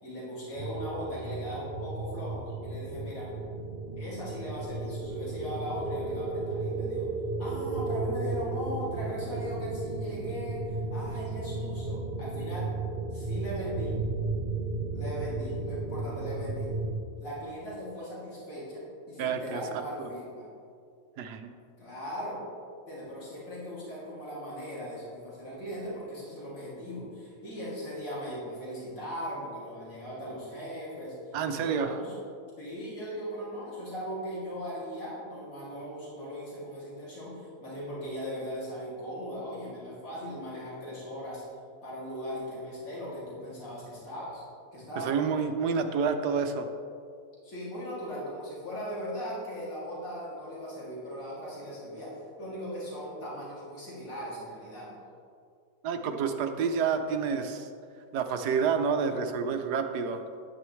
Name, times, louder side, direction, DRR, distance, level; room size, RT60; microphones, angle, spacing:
voice 1, 0.0-3.3 4.0-7.1 7.4-12.7 13.1-14.0 14.9-16.7 17.2-20.5 21.8-22.4 22.9-32.1 32.6-41.4 41.8-44.4 44.7-45.1 47.4-54.9, equal, 55° left, -8 dB, 3.1 m, -39 dB
sound 1, 0.5-17.0, right 3 dB, 50° right, 0.6 m, -34 dB
voice 2, 19.2-20.1 21.2-21.5 31.3-32.0 45.0-46.7 55.8-57.7 58.1-60.2, right 6 dB, 80° right, 7 dB, 1.3 m, -29 dB
10.5 x 9.5 x 3.1 m, 2.3 s
omnidirectional pair, 1.7 m